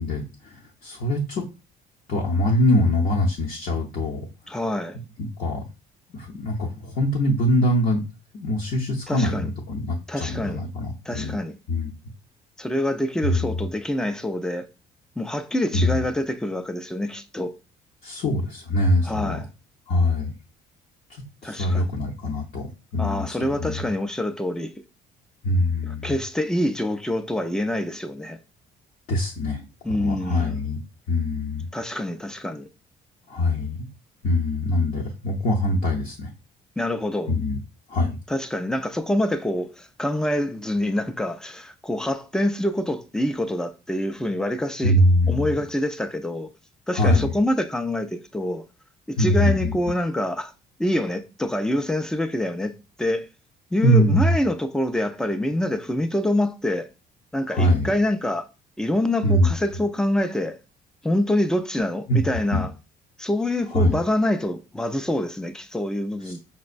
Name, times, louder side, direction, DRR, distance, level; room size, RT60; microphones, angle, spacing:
voice 1, 0.0-1.4 2.1-4.6 5.2-5.6 6.1-8.0 8.3-11.4 11.7-11.9 13.2-13.7 15.7-16.0 18.0-19.4 19.9-20.3 21.1-23.9 25.4-26.1 29.1-30.8 31.1-31.7 33.3-33.9 34.2-36.3 37.3-37.6 37.9-38.2 44.8-45.6 46.9-47.3 49.1-49.8 53.8-54.4 57.5-57.9 59.2-59.5 62.1-62.2 62.5-62.7 63.7-64.0 66.2-66.4, left 1 dB, 60° left, 0.7 m, -23 dB
voice 2, 4.5-5.0 9.1-9.5 10.1-10.6 11.1-11.5 12.6-14.7 15.2-17.5 19.1-19.4 21.4-21.9 23.0-24.7 25.8-28.4 29.8-30.6 31.7-32.7 36.8-37.3 38.3-44.9 45.3-46.5 46.9-48.6 49.1-50.5 50.8-53.3 53.7-56.9 57.3-58.5 58.8-60.6 61.0-62.7 63.2-66.4, left 1 dB, 5° left, 0.3 m, -26 dB
5.3 x 2.1 x 2.4 m
cardioid pair, 110°, 17 cm